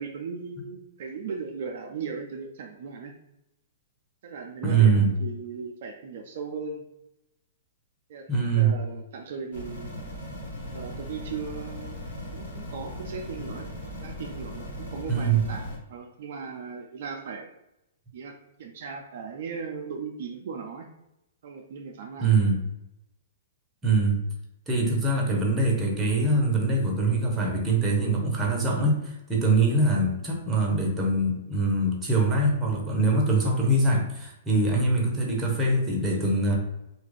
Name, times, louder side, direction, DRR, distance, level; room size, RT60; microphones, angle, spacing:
voice 1, 0.0-3.2 4.2-6.8 8.1-9.9 10.7-12.0 12.3-13.7 14.0-17.5 18.1-20.9 21.4-22.4, right 5 dB, 60° right, 2 dB, 0.4 m, -37 dB
voice 2, 4.6-5.1 8.3-8.8 15.1-15.4 22.2-22.6 23.8-24.2 24.7-36.6, right 3 dB, 15° right, -1 dB, 0.8 m, -23 dB
sound 1, 9.5-15.8, left 1 dB, 75° left, 1.1 m, -38 dB
2.9 x 2.4 x 3.2 m, 0.87 s
hypercardioid pair, 125°, 0 cm